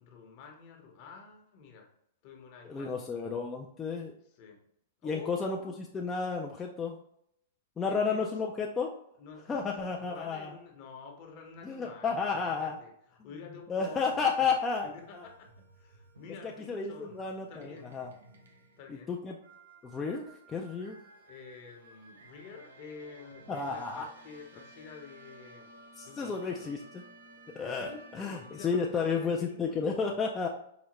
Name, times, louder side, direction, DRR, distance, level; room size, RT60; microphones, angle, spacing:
voice 1, 0.0-1.9 2.2-2.9 4.4-4.6 5.0-5.7 7.8-8.3 9.2-9.7 9.9-14.2 14.8-17.2 17.5-18.0 18.8-19.2 21.3-25.7 26.0-26.7 27.7-30.2, left 5 dB, 45° left, 2 dB, 0.8 m, -49 dB
voice 2, 2.6-4.1 5.0-7.0 7.8-8.9 9.5-10.5 11.6-12.8 13.7-14.9 15.1-15.3 16.7-18.1 19.1-19.4 19.8-21.0 23.5-24.0 26.0-27.0 27.6-30.5, left 5 dB, 15° left, -1 dB, 0.3 m, -32 dB
sound 1, 13.9-29.3, right 2 dB, 90° right, 0.6 m, -56 dB
4.8 x 2.1 x 3.0 m, 0.73 s
hypercardioid pair, 135°, 0 cm